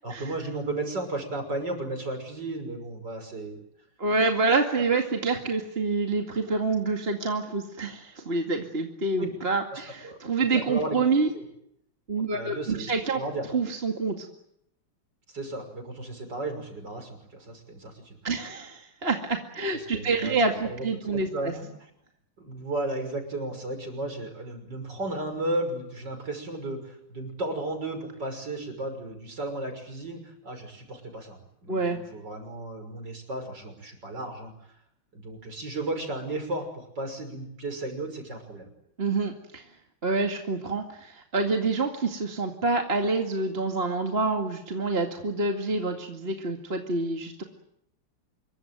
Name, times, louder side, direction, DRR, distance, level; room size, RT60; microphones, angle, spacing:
voice 1, 0.0-3.6 4.8-4.9 9.2-9.3 9.7-10.2 10.5-11.4 12.3-13.5 15.3-18.3 19.7-20.4 20.6-20.9 21.1-21.7 22.4-34.8 35.1-38.7, right 2 dB, 55° right, 5 dB, 6.7 m, -34 dB
voice 2, 4.0-11.3 12.1-13.2 13.5-14.2 18.2-21.5 31.7-32.0 39.0-39.6 40.0-47.4, right 3 dB, 30° right, 3 dB, 2.4 m, -27 dB
27.0 x 23.0 x 9.3 m, 0.76 s
omnidirectional pair, 2.2 m